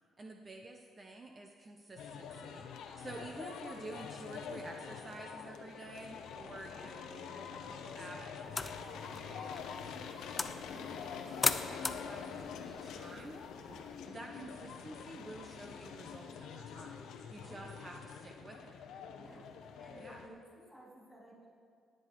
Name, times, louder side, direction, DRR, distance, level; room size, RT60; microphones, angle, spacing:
voice 1, 0.2-13.4 14.1-18.8 20.0-20.2, right 2 dB, 30° right, 2 dB, 1.0 m, -50 dB
sound 1, 2.0-20.3, left 6 dB, 85° left, 1.0 m, -46 dB
voice 2, 3.0-3.5 6.7-6.9 13.6-13.8 17.3-17.7 19.2-19.5 19.8-21.5, right 1 dB, ahead, -5 dB, 3.7 m, -56 dB
sound 2, 8.4-14.0, left 3 dB, 20° left, 0.6 m, -39 dB
19.0 x 7.8 x 4.8 m, 2.3 s
cardioid pair, 90°, 0 cm